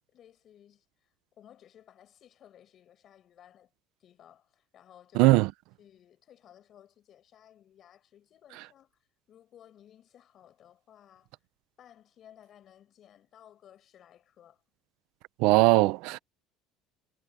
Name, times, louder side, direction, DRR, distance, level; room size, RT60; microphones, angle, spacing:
voice 1, 0.1-3.7 4.0-5.3 5.8-8.9 9.3-11.3 11.8-14.6, left 10 dB, 35° left, 7.3 m, -57 dB
voice 2, 5.2-5.5 15.4-16.2, right 20 dB, 65° right, 0.8 m, -20 dB
cardioid pair, 170°, 0 cm